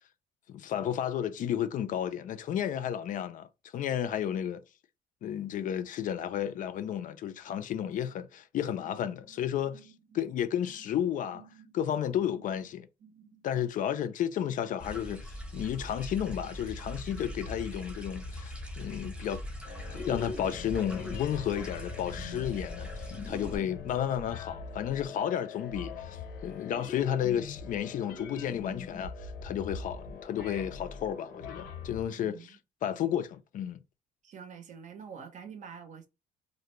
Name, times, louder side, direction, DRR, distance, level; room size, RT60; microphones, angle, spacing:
voice 1, 0.5-4.6 5.2-11.5 11.7-12.9 13.4-19.4 20.1-32.6 32.8-33.8, left 10 dB, 50° left, 0.4 m, -32 dB
sound 1, 8.8-13.6, right 8 dB, 85° right, 0.8 m, -58 dB
sound 2, 14.8-23.6, left 1 dB, 5° right, 0.8 m, -41 dB
sound 3, 19.6-32.1, left 4 dB, 80° left, 0.7 m, -42 dB
voice 2, 32.2-32.6 34.2-36.1, right 6 dB, 45° right, 0.6 m, -46 dB
2.5 x 2.1 x 3.0 m
cardioid pair, 110°, 17 cm